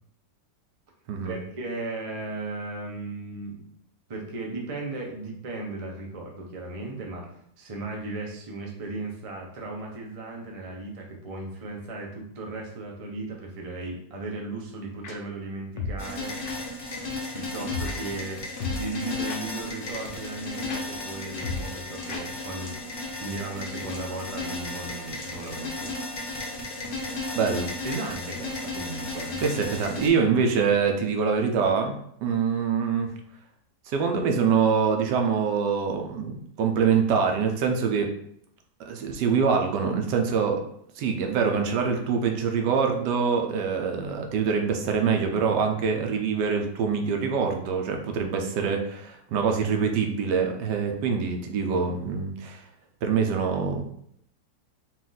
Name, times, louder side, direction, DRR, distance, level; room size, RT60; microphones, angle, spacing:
voice 1, 1.2-3.6 4.1-7.3 7.6-16.4 17.3-26.0 27.8-29.4, right 2 dB, 50° right, 0 dB, 0.4 m, -36 dB
sound 1, 15.0-15.2 15.8-16.0 16.4-16.6 17.7-18.0 18.6-19.7 20.0-20.1 20.4-20.5 20.7-20.8 21.1-21.2 21.4-21.8 22.1-22.2 22.5-22.6 22.8-22.9, left 4 dB, 90° left, 1.3 m, -33 dB
sound 2, 16.0-30.1, left 2 dB, 45° left, 0.8 m, -34 dB
voice 2, 27.3-27.7 29.4-33.1 33.9-38.1 38.9-40.6 41.0-52.6 53.0-53.8, right 6 dB, 80° right, 4 dB, 1.3 m, -25 dB
4.3 x 2.5 x 3.9 m, 0.68 s
omnidirectional pair, 1.8 m